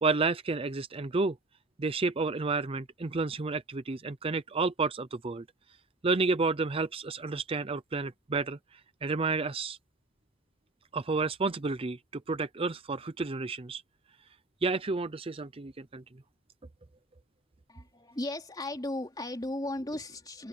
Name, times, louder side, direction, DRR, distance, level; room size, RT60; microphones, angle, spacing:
voice 1, 0.0-1.4 1.8-5.4 6.0-8.6 9.0-9.8 10.9-13.8 14.6-16.0, right 3 dB, 30° right, 0.6 m, -30 dB
voice 2, 17.7-20.5, left 1 dB, 20° left, 3.2 m, -36 dB
open air
head